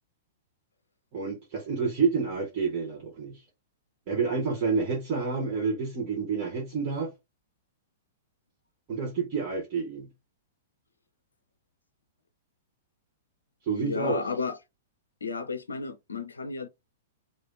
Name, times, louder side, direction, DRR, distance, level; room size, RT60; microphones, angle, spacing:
voice 1, 1.1-3.4 4.1-7.1 8.9-10.1 13.7-14.2, right 5 dB, 40° right, 1.3 m, -29 dB
voice 2, 13.7-14.6 15.2-16.7, left 4 dB, 75° left, 0.5 m, -32 dB
3.2 x 2.2 x 3.8 m
figure-of-eight pair, 105°, 0 cm